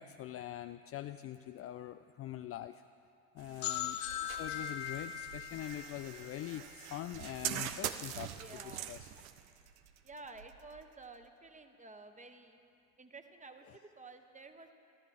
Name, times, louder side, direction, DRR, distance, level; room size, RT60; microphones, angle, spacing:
voice 1, 0.0-2.8 3.3-9.1 13.7-13.8, left 12 dB, 35° left, 10 dB, 0.4 m, -44 dB
voice 2, 3.4-3.9 8.4-8.9 10.0-12.6 13.0-14.7, right 3 dB, 15° right, 6 dB, 1.4 m, -52 dB
sound 1, 3.4-11.3, right 10 dB, 75° right, 0.9 m, -44 dB
sound 2, 3.6-7.3, left 10 dB, 50° left, 1.2 m, -40 dB
28.5 x 13.0 x 3.7 m, 2.6 s
hypercardioid pair, 65°, 43 cm